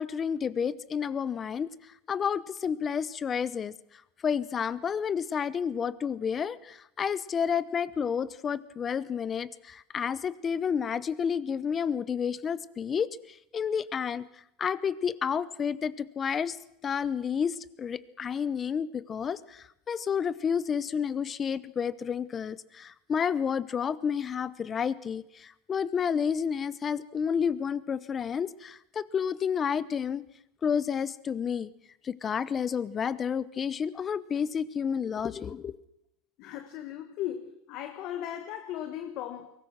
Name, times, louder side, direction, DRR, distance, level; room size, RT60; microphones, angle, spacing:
voice 1, 0.0-3.7 4.2-14.3 14.6-16.6 16.8-30.2 30.6-31.7 32.0-35.8, left 7 dB, 25° left, 0.8 m, -30 dB
voice 2, 36.4-39.5, left 11 dB, 50° left, 1.4 m, -37 dB
22.5 x 19.0 x 6.0 m
supercardioid pair, 150°, 0 cm